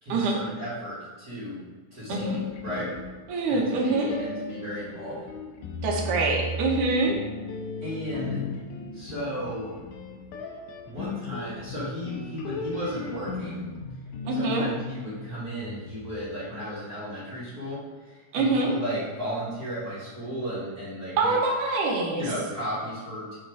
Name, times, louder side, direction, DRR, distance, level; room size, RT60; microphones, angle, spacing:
voice 1, 0.0-1.6 1.9-2.9 3.5-5.2 7.8-8.4 8.9-9.7 10.8-13.6 14.3-21.4 22.1-23.4, equal, 35° right, -10 dB, 1.5 m, -34 dB
sound 1, 2.1-3.6 4.1-16.3, left 3 dB, 80° left, 2.2 m, -36 dB
voice 2, 3.3-4.1 5.8-7.2 14.2-14.7 18.3-18.7 21.2-22.3, right 3 dB, 70° right, -1 dB, 2.4 m, -25 dB
7.3 x 3.7 x 4.7 m, 1.4 s
omnidirectional pair, 4.1 m